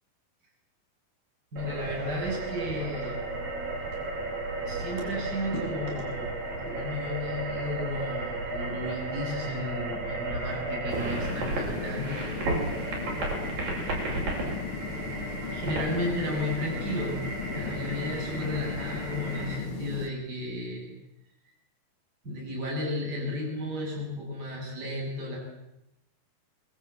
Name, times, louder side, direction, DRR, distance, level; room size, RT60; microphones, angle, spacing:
voice 1, 1.5-3.2 3.8-4.0 4.7-12.2 15.5-20.9 22.2-25.4, left 1 dB, 25° right, -2 dB, 7.9 m, -33 dB
sound 1, 1.6-19.6, right 2 dB, 65° right, 9.2 m, -34 dB
sound 2, 10.9-20.1, left 7 dB, 50° left, 1.8 m, -37 dB
27.5 x 22.5 x 8.4 m, 0.87 s
omnidirectional pair, 4.4 m